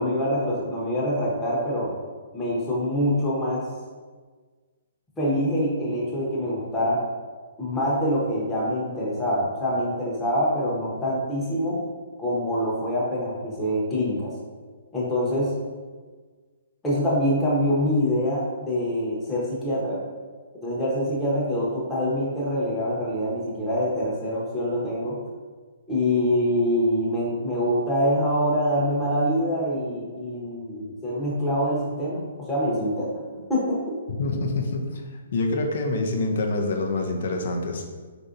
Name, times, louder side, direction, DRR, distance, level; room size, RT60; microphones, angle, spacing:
voice 1, 0.0-1.9 2.3-3.7 5.2-7.0 7.6-11.8 12.2-14.3 14.9-15.5 16.8-20.0 20.6-25.2 25.9-33.2 33.5-34.0, equal, 10° left, -7 dB, 0.8 m, -25 dB
voice 2, 34.2-35.0 35.3-37.9, left 2 dB, 65° left, 3 dB, 0.5 m, -26 dB
4.1 x 2.6 x 2.5 m, 1.4 s
hypercardioid pair, 135°, 0 cm